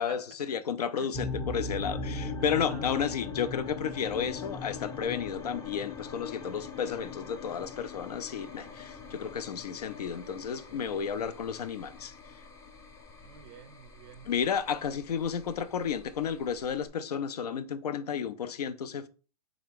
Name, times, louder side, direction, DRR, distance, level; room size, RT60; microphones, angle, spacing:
voice 1, 0.0-12.1 14.3-19.1, left 7 dB, 80° left, 0.5 m, -32 dB
sound 1, 1.1-16.9, left 3 dB, 15° left, 0.5 m, -40 dB
voice 2, 1.8-3.0 13.2-14.3 14.7-14.8, right 9 dB, 40° right, 0.4 m, -51 dB
3.7 x 2.8 x 3.4 m
hypercardioid pair, 125°, 20 cm